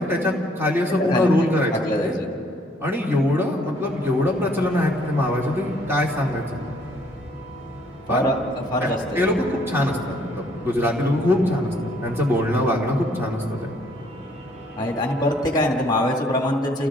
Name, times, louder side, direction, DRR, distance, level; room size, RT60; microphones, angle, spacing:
voice 1, 0.0-1.7 2.0-2.2 2.8-6.6 8.1-8.3 8.8-11.7 12.0-13.7, left 1 dB, 10° right, -2 dB, 2.8 m, -22 dB
voice 2, 0.9-2.3 8.1-8.4 8.7-9.2 12.1-12.2 14.8-16.9, left 1 dB, 20° left, 1 dB, 2.2 m, -23 dB
sound 1, 3.7-15.6, right 1 dB, 35° right, 4.0 m, -39 dB
29.5 x 29.5 x 3.8 m, 2.8 s
head